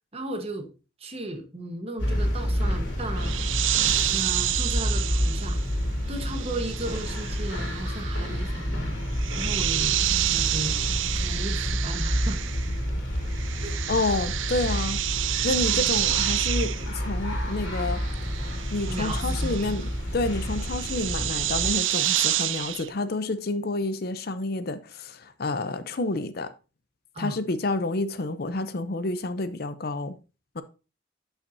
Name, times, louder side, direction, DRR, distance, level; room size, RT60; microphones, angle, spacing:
voice 1, 0.1-0.7 1.0-3.4 4.1-5.6 6.1-8.9 9.3-10.8 11.1-12.4 13.6-13.7 15.7-15.9 18.9-19.8 27.1-27.4, right 1 dB, 30° right, 1.2 m, -35 dB
sound 1, 2.0-21.7, equal, 85° left, 2.7 m, -29 dB
sound 2, 3.2-12.9 13.1-22.9, right 13 dB, 90° right, 0.5 m, -29 dB
voice 2, 13.9-15.0 15.4-18.0 18.7-26.5 27.2-30.1 30.5-30.6, left 2 dB, 55° left, 0.6 m, -29 dB
11.0 x 5.7 x 2.7 m
head